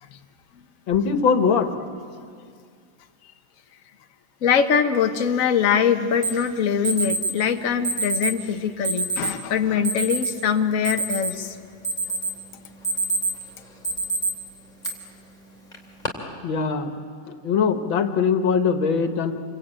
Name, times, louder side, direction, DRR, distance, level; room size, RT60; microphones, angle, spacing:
voice 1, 0.9-1.7 16.4-16.9 17.3-19.3, left 6 dB, 85° left, 7 dB, 2.2 m, -21 dB
voice 2, 4.4-11.6, left 7 dB, 50° left, 5 dB, 1.4 m, -22 dB
Alarm, 6.2-6.3 6.8-7.3 7.8-8.3 8.8-9.3 9.8-10.3 10.7-11.5 11.8-12.4 12.7-13.4 13.8-14.3 14.8-14.9 15.7-16.1, right 3 dB, 20° left, 3.1 m, -25 dB
28.0 x 23.5 x 9.0 m, 2.2 s
omnidirectional pair, 2.1 m